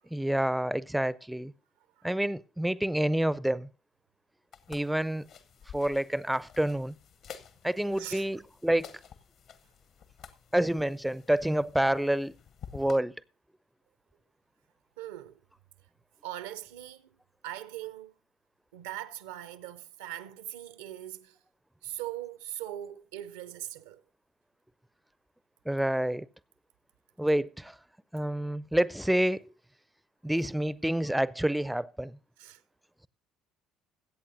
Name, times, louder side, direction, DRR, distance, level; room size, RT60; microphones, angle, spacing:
voice 1, 0.1-1.5 2.0-3.7 4.7-5.3 5.7-7.0 7.6-8.9 10.5-12.3 12.7-13.1 25.7-26.3 27.2-27.8 28.1-29.4 30.2-32.2, right 1 dB, 5° right, 0.4 m, -28 dB
sound 1, 4.5-13.0, left 7 dB, 50° left, 0.9 m, -51 dB
voice 2, 7.9-8.3 15.0-15.4 16.2-17.2 17.4-18.1 18.7-21.4 21.8-24.0 32.4-32.6, right 13 dB, 70° right, 0.5 m, -41 dB
21.0 x 8.5 x 2.6 m
figure-of-eight pair, 55°, 0 cm